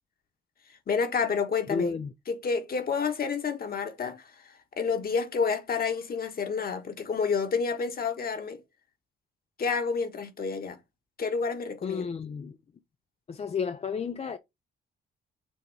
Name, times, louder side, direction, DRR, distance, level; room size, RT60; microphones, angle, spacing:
voice 1, 0.9-1.9 2.3-8.6 9.6-10.8 11.2-12.1, left 5 dB, 50° left, 1.5 m, -29 dB
voice 2, 1.7-2.1 11.8-12.6 13.3-14.4, left 6 dB, 30° left, 0.5 m, -31 dB
7.0 x 3.0 x 4.7 m
cardioid pair, 90°, 20 cm